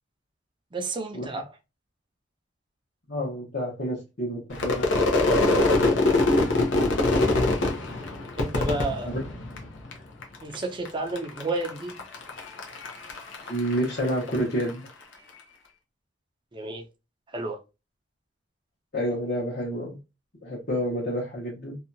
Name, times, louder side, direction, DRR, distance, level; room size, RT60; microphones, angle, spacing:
voice 1, 0.7-1.5 8.4-9.1 10.4-12.0 16.5-16.8 17.3-17.6, right 2 dB, 25° right, 0.5 m, -31 dB
voice 2, 3.1-4.9 5.4-5.8 9.0-9.2 13.5-14.8 18.9-20.0 20.4-21.8, equal, 55° left, 1.1 m, -29 dB
Crowd / Fireworks, 4.5-9.9 10.2-10.9 11.2-14.7, left 2 dB, 70° left, 0.7 m, -24 dB
2.7 x 2.3 x 2.6 m
head